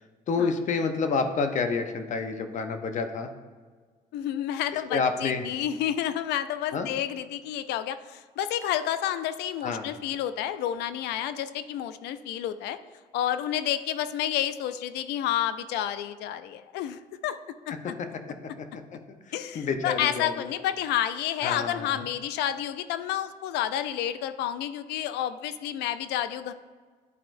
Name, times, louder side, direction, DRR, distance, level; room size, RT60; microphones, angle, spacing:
voice 1, 0.0-3.3 4.9-5.4 6.7-6.9 9.6-9.9 18.0-18.1 18.4-20.5 21.4-22.1, left 4 dB, 45° left, 7 dB, 0.7 m, -29 dB
voice 2, 4.1-12.8 13.1-17.4 17.7-17.8 19.3-26.5, left 11 dB, 85° left, 13 dB, 0.4 m, -30 dB
10.5 x 4.4 x 2.6 m, 1.5 s
cardioid pair, 110°, 17 cm